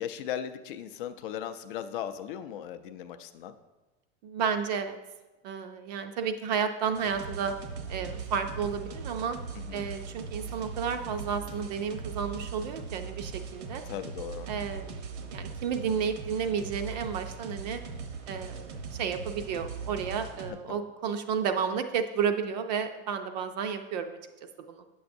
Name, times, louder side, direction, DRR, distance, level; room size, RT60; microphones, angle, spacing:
voice 1, 0.0-3.5 9.5-9.9 13.8-14.5 20.7-20.8, left 9 dB, 50° left, 9 dB, 0.4 m, -37 dB
voice 2, 4.2-5.0 5.4-7.5 7.9-9.4 9.7-13.8 14.5-17.8 18.3-24.2 24.7-24.8, right 6 dB, 40° right, 7 dB, 0.4 m, -32 dB
sound 1, 6.9-20.5, right 5 dB, 90° right, 1.0 m, -40 dB
8.8 x 7.0 x 2.6 m, 1.1 s
supercardioid pair, 170°, 34 cm